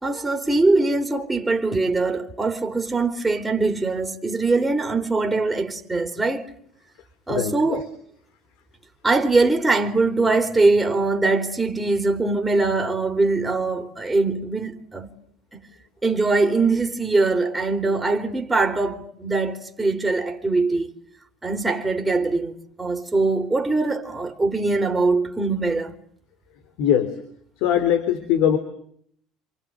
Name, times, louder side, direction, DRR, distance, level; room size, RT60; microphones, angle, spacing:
voice 1, 0.0-6.5 7.3-7.9 9.0-15.1 16.0-20.9 21.4-25.9, right 3 dB, 10° right, 3.2 m, -22 dB
voice 2, 7.3-7.8 26.8-27.2 27.6-28.6, left 9 dB, 80° left, 3.6 m, -21 dB
29.0 x 27.0 x 7.7 m
cardioid pair, 125°, 0 cm